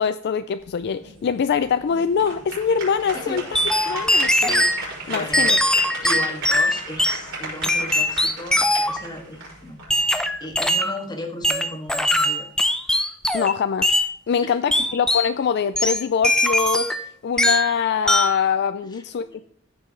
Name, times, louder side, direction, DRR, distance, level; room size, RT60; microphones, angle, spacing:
voice 1, 0.0-3.4 3.9-5.6 13.3-13.9 14.3-16.9 17.2-19.3, left 6 dB, 50° left, 11 dB, 0.4 m, -23 dB
sound 1, 0.6-10.7, right 2 dB, 65° right, 5.0 m, -35 dB
voice 2, 3.1-3.5 5.1-5.6 6.0-9.8 10.4-12.5 14.4-14.9 18.9-19.4, left 1 dB, 20° left, 3 dB, 1.6 m, -35 dB
sound 2, 3.5-4.8 5.3-7.2 7.6-9.0 9.9-11.0 11.4-13.5 13.8-14.1 14.7-15.3 15.8-17.1 17.4-17.8 18.1-18.4, left 1 dB, 5° left, 0.6 m, -21 dB
15.0 x 6.0 x 3.8 m, 0.64 s
head